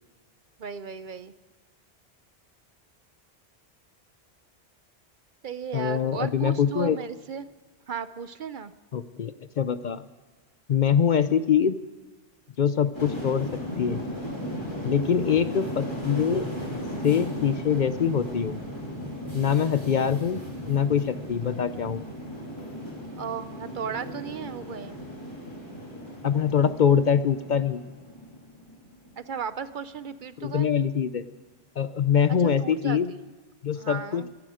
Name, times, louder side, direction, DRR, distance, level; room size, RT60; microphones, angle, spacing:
voice 1, 0.6-1.3 5.4-7.5 7.9-8.7 23.2-25.0 29.2-30.7 32.6-33.0 33.8-34.3, right 7 dB, 55° right, 13 dB, 0.7 m, -35 dB
voice 2, 5.7-7.0 8.9-10.0 10.7-11.8 12.6-14.0 14.8-16.5 17.0-18.6 19.3-22.0 26.2-27.8 30.4-31.2 31.8-33.1 33.6-34.3, left 7 dB, 55° left, 13 dB, 0.6 m, -24 dB
sound 1, 12.9-29.4 29.7-30.1, equal, 25° left, 3.5 m, -36 dB
24.0 x 10.5 x 4.9 m, 1.3 s
omnidirectional pair, 1.1 m